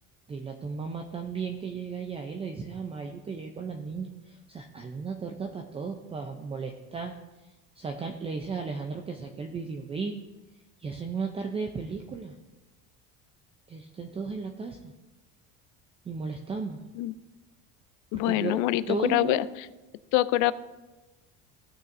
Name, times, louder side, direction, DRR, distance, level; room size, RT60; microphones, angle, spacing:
voice 1, 0.3-7.1 7.8-10.2 10.8-12.3 13.7-14.9 16.0-16.8 18.1-18.6 18.9-19.4, right 5 dB, 20° right, 3 dB, 0.5 m, -35 dB
voice 2, 18.1-19.4 20.1-20.5, left 16 dB, 65° left, 17 dB, 0.5 m, -24 dB
16.0 x 6.3 x 2.6 m, 1.1 s
cardioid pair, 145°, 32 cm